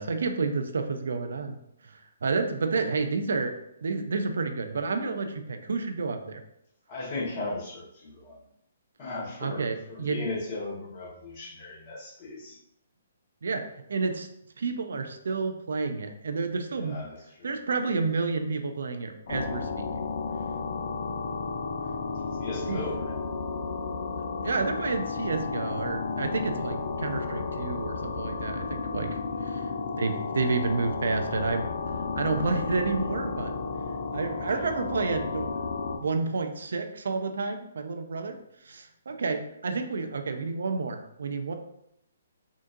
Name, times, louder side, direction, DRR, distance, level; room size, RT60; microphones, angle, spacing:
voice 1, 0.0-1.6 1.9-3.5 3.8-6.4 9.4-10.3 13.4-14.3 14.6-17.0 17.4-20.0 22.7-22.8 24.4-29.2 29.5-29.6 30.0-33.5 34.1-35.6 36.0-38.4 38.7-41.5, right 4 dB, 70° right, 6 dB, 0.4 m, -30 dB
voice 2, 6.9-8.3 9.0-12.6 16.8-17.6 22.4-23.1, left 2 dB, 40° left, -5 dB, 1.3 m, -37 dB
sound 1, 19.3-36.0, left 4 dB, 55° left, 0.6 m, -33 dB
3.8 x 2.5 x 2.5 m, 0.77 s
figure-of-eight pair, 135°, 0 cm